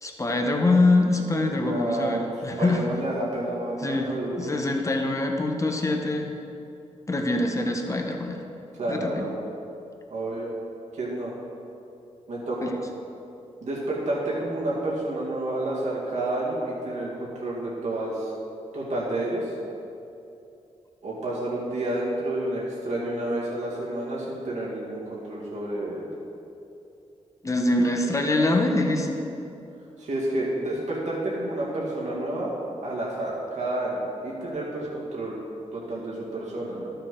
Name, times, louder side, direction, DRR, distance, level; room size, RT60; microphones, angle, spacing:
voice 1, 0.0-2.8 3.8-6.4 7.1-8.4 8.9-9.2 12.6-12.7 27.4-29.2, left 2 dB, 25° left, 2 dB, 1.2 m, -24 dB
voice 2, 1.6-2.3 2.6-4.6 8.8-9.3 10.1-10.5 10.9-11.3 12.3-12.7 13.6-18.3 18.7-19.5 21.0-26.1 28.0-28.2 30.0-32.5 32.8-35.3 35.7-36.9, right 1 dB, 70° right, -6 dB, 2.4 m, -30 dB
12.5 x 6.8 x 3.9 m, 2.7 s
cardioid pair, 70°, 12 cm